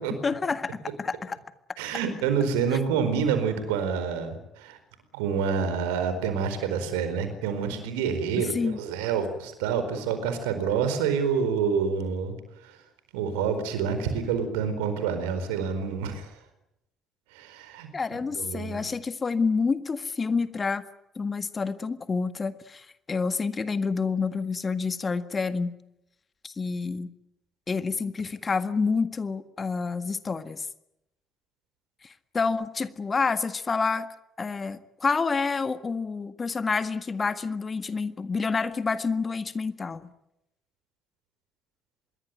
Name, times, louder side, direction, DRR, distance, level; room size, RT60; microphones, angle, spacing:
voice 1, 0.2-1.4 8.5-8.8 17.9-20.8 21.1-25.8 26.4-27.1 27.7-30.6 32.0-34.1 34.4-40.1, left 4 dB, 35° left, 12 dB, 1.7 m, -28 dB
voice 2, 1.8-4.8 5.1-12.3 12.6-12.8 13.1-16.4 17.3-17.9 18.3-18.9, right 6 dB, 75° right, 9 dB, 4.5 m, -27 dB
26.0 x 22.0 x 9.3 m, 0.85 s
figure-of-eight pair, 45°, 0 cm